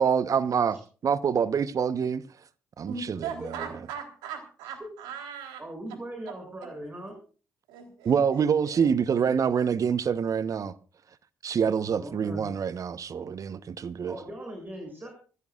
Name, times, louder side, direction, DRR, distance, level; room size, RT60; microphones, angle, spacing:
voice 1, 0.0-2.2 2.8-3.7 8.0-10.7 11.4-14.2, right 7 dB, 50° right, 1.0 m, -26 dB
voice 2, 2.9-5.6 7.7-8.9, right 6 dB, 75° right, 3.7 m, -39 dB
voice 3, 5.6-7.2 11.9-12.5 14.1-15.1, right 1 dB, 25° right, 7.1 m, -40 dB
24.5 x 15.5 x 2.5 m
hypercardioid pair, 45°, 7 cm